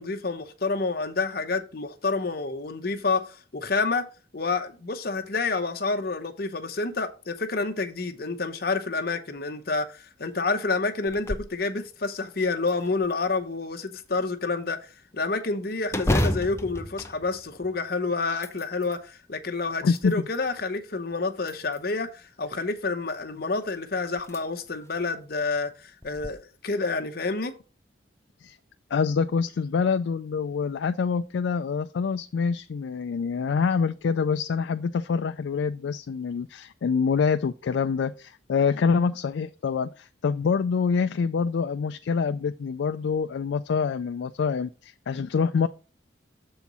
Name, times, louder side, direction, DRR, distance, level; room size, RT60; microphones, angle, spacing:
voice 1, 0.0-4.0 4.3-27.5, left 3 dB, 55° left, 0.9 m, -29 dB
sound 1, 11.1-11.6 12.0-12.1 12.7-13.5 15.9-17.9 18.3-19.0 19.7-20.5 21.4-22.1 23.5-23.6 24.2-24.4 24.9-25.0 26.0-26.3, left 1 dB, 15° left, 0.5 m, -30 dB
voice 2, 19.8-20.1 28.4-28.6 28.9-45.7, left 5 dB, 70° left, 0.3 m, -26 dB
7.2 x 4.4 x 5.4 m
head